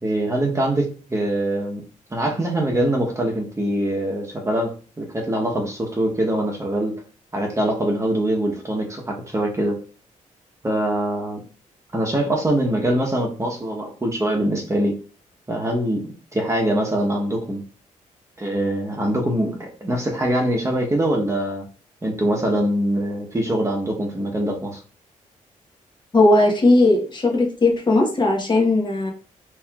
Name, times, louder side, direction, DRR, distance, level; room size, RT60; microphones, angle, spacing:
voice 1, 0.0-1.8 2.1-6.9 7.3-9.8 10.6-11.4 11.9-15.0 15.5-16.0 16.3-17.6 18.4-21.6 22.0-24.8, right 1 dB, 20° right, 0 dB, 1.0 m, -23 dB
voice 2, 26.1-29.1, left 2 dB, 35° left, 0 dB, 1.1 m, -17 dB
4.2 x 3.3 x 2.4 m, 0.38 s
cardioid pair, 90°, 14 cm